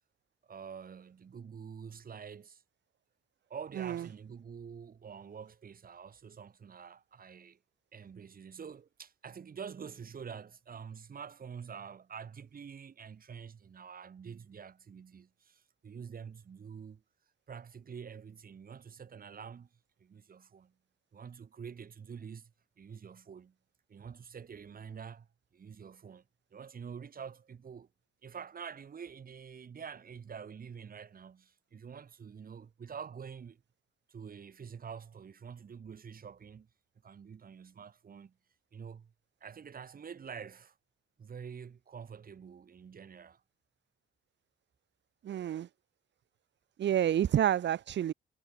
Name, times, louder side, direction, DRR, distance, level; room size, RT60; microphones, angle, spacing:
voice 1, 0.4-2.6 3.5-7.6 7.9-17.0 17.5-19.7 20.0-20.7 21.1-23.6 23.9-25.3 25.5-26.2 26.5-27.9 28.2-33.6 34.1-36.7 37.0-38.4 38.7-39.1 39.4-40.8 41.2-43.4, right 6 dB, 45° right, 7.1 m, -47 dB
voice 2, 45.2-45.7 46.8-48.1, right 10 dB, 65° right, 1.8 m, -29 dB
cardioid pair, 90°, 20 cm